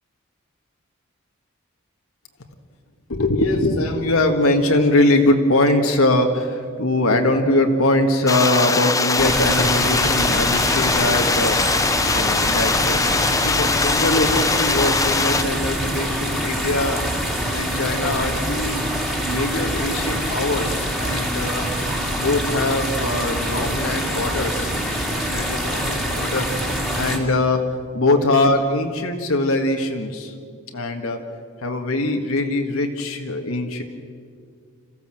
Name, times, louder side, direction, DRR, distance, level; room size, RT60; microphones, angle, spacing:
voice 1, 3.1-11.6 12.1-13.0 13.3-17.0 17.5-18.8 19.3-21.7 22.1-24.7 25.0-26.5 26.9-27.6 27.9-30.3 30.7-31.2 31.6-33.8, left 2 dB, 85° left, 3 dB, 1.8 m, -22 dB
sound 1, 8.3-15.4, left 4 dB, 15° left, 0.6 m, -21 dB
sound 2, 9.2-27.2, equal, ahead, 2.4 m, -25 dB
27.0 x 15.5 x 7.7 m, 2.2 s
head